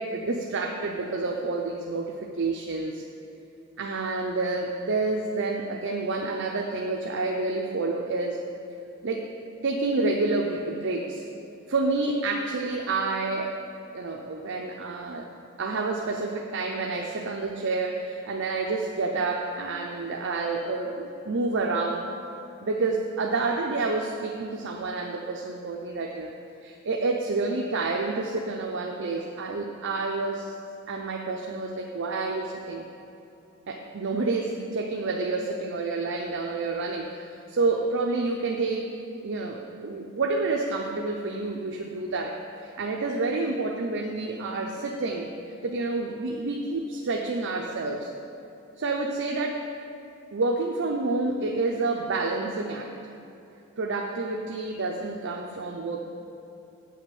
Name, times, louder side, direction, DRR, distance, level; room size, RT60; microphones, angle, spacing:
voice 1, 0.0-3.0 3.8-8.4 9.0-9.3 9.6-11.2 11.7-13.6 13.9-15.3 15.6-22.1 22.6-26.3 26.6-30.5 30.9-32.9 33.7-38.9 39.2-42.4 42.6-45.3 45.6-48.1 48.8-49.7 50.3-52.9 53.8-56.0, right 3 dB, 60° right, 1 dB, 0.6 m, -29 dB
8.4 x 5.7 x 7.5 m, 2.9 s
head